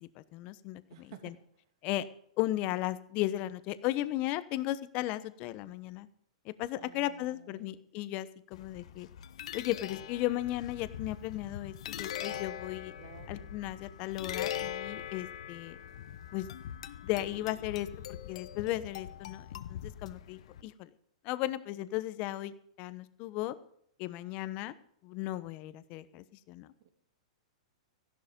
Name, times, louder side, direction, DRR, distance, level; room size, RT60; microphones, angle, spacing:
voice 1, 0.0-1.3 1.8-2.1 2.4-6.1 6.4-9.1 9.5-12.9 13.3-15.8 16.3-16.5 17.0-17.9 18.3-20.9 21.2-23.5 24.0-24.7 25.0-26.7, left 15 dB, 40° left, 15 dB, 1.0 m, -35 dB
voice 2, 0.9-1.4 6.8-7.8 13.0-13.5 26.8-26.9, right 9 dB, 55° right, 7 dB, 2.7 m, -53 dB
sound 1, 8.5-20.6, left 10 dB, 70° left, 1.1 m, -42 dB
15.0 x 11.5 x 5.3 m, 0.66 s
hypercardioid pair, 140°, 3 cm